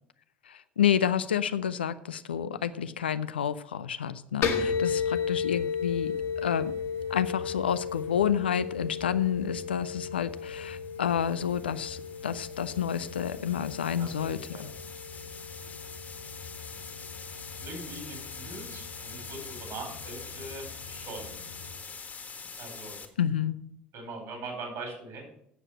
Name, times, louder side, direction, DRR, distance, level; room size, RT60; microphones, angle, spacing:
voice 1, 0.5-6.1 6.4-6.7 7.1-14.7 23.2-23.6, left 9 dB, 80° left, 13 dB, 0.5 m, -29 dB
sound 1, 4.4-21.8, left 6 dB, 55° left, 1.8 m, -35 dB
sound 2, 7.7-8.0 10.2-23.1, left 5 dB, 30° left, 1.7 m, -45 dB
voice 2, 14.0-14.6 15.3-15.5 16.7-16.8 17.6-21.3 22.6-23.0 23.9-25.2, right 2 dB, 55° right, 2 dB, 4.6 m, -42 dB
8.2 x 7.3 x 7.6 m, 0.72 s
figure-of-eight pair, 60°, 5 cm